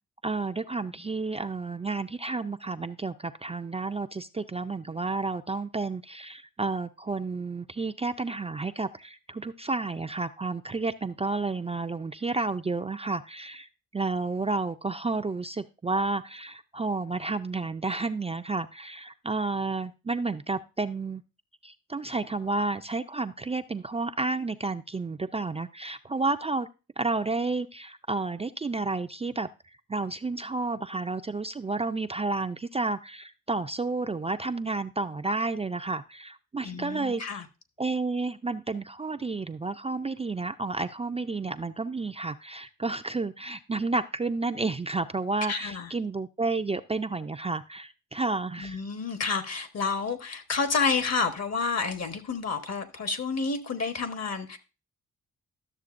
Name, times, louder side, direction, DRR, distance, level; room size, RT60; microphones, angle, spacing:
voice 1, 0.2-21.2 21.6-26.7 27.0-29.5 29.9-37.2 37.8-48.8, right 3 dB, 20° right, 0.4 m, -31 dB
voice 2, 36.6-37.4 45.5-45.9 48.6-54.6, left 4 dB, 55° left, 1.2 m, -29 dB
12.0 x 6.7 x 2.5 m
cardioid pair, 60°, 31 cm